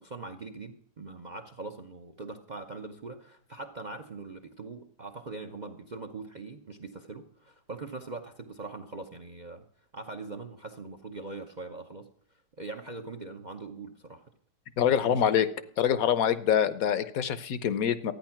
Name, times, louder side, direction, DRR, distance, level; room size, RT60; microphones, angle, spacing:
voice 1, 0.0-9.6 9.9-12.1 12.6-14.3 14.9-15.2, right 3 dB, 45° right, 7 dB, 0.5 m, -42 dB
voice 2, 14.8-15.5 15.8-18.1, left 9 dB, 60° left, 14 dB, 1.1 m, -25 dB
13.5 x 9.6 x 5.8 m, 0.65 s
omnidirectional pair, 1.9 m